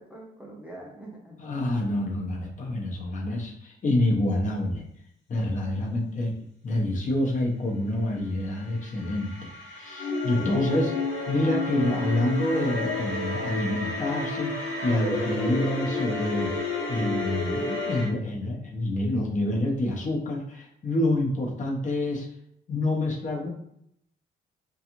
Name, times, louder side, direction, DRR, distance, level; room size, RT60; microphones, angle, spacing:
voice 1, 0.0-1.4 5.6-6.2, right 1 dB, 5° right, -3 dB, 0.5 m, -45 dB
voice 2, 1.4-4.8 5.3-6.3 6.6-22.3 22.7-23.5, left 1 dB, 40° left, -2 dB, 0.7 m, -27 dB
sound 1, 8.5-18.1, left 2 dB, 70° left, 0.9 m, -30 dB
2.5 x 2.3 x 2.9 m, 0.73 s
cardioid pair, 90°, 20 cm